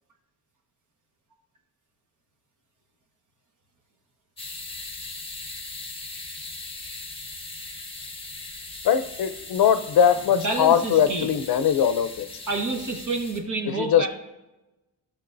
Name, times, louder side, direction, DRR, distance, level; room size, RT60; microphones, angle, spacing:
sound 1, 4.4-13.4, left 3 dB, 15° left, 0.9 m, -39 dB
voice 1, 8.8-12.3 13.8-14.1, left 8 dB, 75° left, 11 dB, 0.6 m, -21 dB
voice 2, 10.3-11.3 12.5-14.1, right 3 dB, 55° right, 1 dB, 1.5 m, -28 dB
15.5 x 6.5 x 2.6 m, 0.99 s
wide cardioid pair, 170°, 37 cm